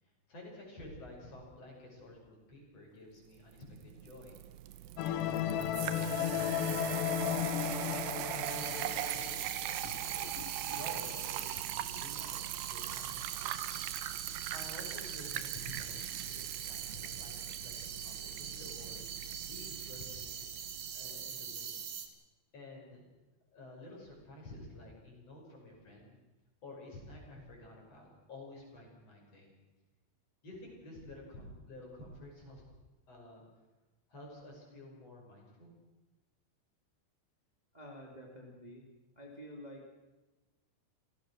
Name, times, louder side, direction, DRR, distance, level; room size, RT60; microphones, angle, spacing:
voice 1, 0.0-4.4 5.0-7.8 8.4-9.6 9.8-10.3 10.7-13.5 14.5-20.5 20.9-21.8 22.5-23.0 23.5-26.1 26.6-29.5 30.4-32.6 33.1-33.4 34.1-35.8, left 1 dB, 30° left, -1 dB, 6.7 m, -51 dB
sound 1, 3.6-21.6, right 13 dB, 75° right, 2.5 m, -40 dB
sound 2, 5.0-10.9, left 10 dB, 70° left, 2.9 m, -35 dB
sound 3, 8.4-22.1, right 7 dB, 55° right, 1.7 m, -44 dB
voice 2, 37.7-38.9 39.1-39.9, equal, 20° right, 0 dB, 1.2 m, -49 dB
29.0 x 17.5 x 6.3 m, 1.1 s
omnidirectional pair, 5.5 m